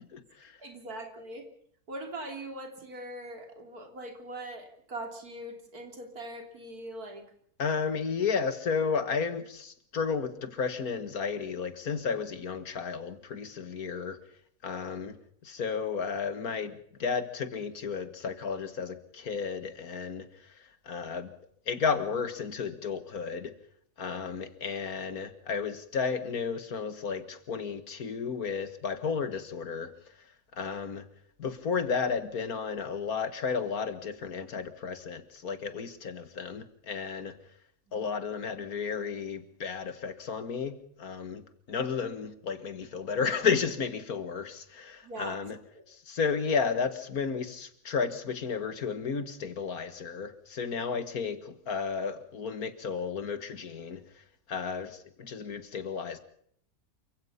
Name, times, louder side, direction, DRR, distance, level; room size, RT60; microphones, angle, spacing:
voice 1, 0.0-0.6 7.6-14.2 14.6-15.2 15.4-21.3 21.7-23.5 24.0-29.9 30.5-31.1 31.4-37.3 37.9-45.6 45.9-56.2, left 5 dB, 80° left, 2.2 m, -33 dB
voice 2, 0.6-1.5 1.9-7.2 37.9-38.1 45.0-45.4 45.7-45.8, right 1 dB, 85° right, 3.8 m, -41 dB
28.5 x 16.5 x 5.7 m
omnidirectional pair, 1.5 m